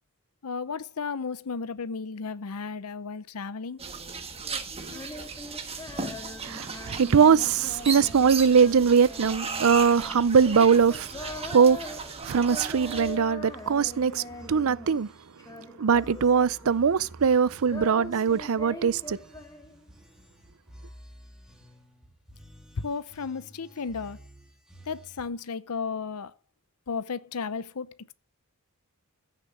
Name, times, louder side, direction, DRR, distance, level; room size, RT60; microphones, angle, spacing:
voice 1, 0.4-3.8 22.8-24.2 24.9-26.3 26.9-28.1, left 5 dB, 85° left, 0.7 m, -34 dB
sound 1, 3.8-13.2, right 4 dB, 25° right, 1.6 m, -36 dB
Female singing, 4.8-15.1 15.4-17.1 17.3-20.0, left 1 dB, 15° left, 2.0 m, -42 dB
voice 2, 6.4-11.8 12.2-15.1 15.8-19.2, right 6 dB, 65° right, 0.5 m, -22 dB
sound 2, 8.0-25.3, right 1 dB, 5° right, 2.5 m, -52 dB
15.0 x 6.7 x 6.1 m
head